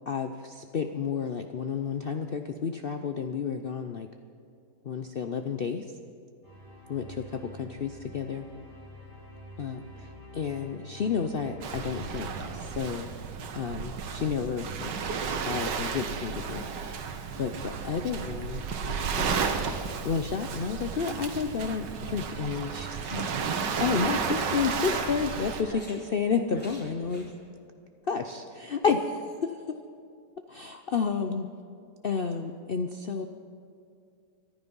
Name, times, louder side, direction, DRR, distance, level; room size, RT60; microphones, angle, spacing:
voice 1, 0.1-4.1 4.8-5.8 6.9-8.5 9.6-10.1 10.3-13.1 13.5-14.9 15.3-17.0 17.4-19.5 20.0-27.3 28.1-29.5 30.5-31.5 32.0-33.2, left 6 dB, 75° left, 6 dB, 0.5 m, -31 dB
sound 1, 6.4-13.5, equal, 25° left, 5.2 m, -48 dB
Waves surf, 11.6-25.6, right 6 dB, 85° right, 1.7 m, -33 dB
sound 2, 22.7-24.2 24.6-26.0 26.5-27.3, equal, 5° left, 3.7 m, -46 dB
25.0 x 10.5 x 5.4 m, 2.4 s
omnidirectional pair, 1.8 m